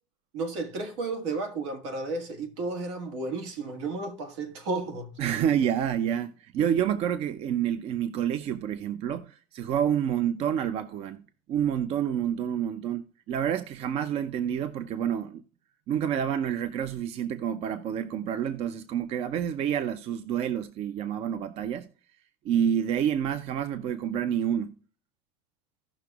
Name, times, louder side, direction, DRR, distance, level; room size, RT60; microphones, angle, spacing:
voice 1, 0.3-5.2, right 3 dB, 80° right, 1.9 m, -33 dB
voice 2, 5.2-15.4 15.9-21.9 22.4-24.8, right 9 dB, 45° right, 0.6 m, -28 dB
16.5 x 5.9 x 2.4 m
supercardioid pair, 135°, 14 cm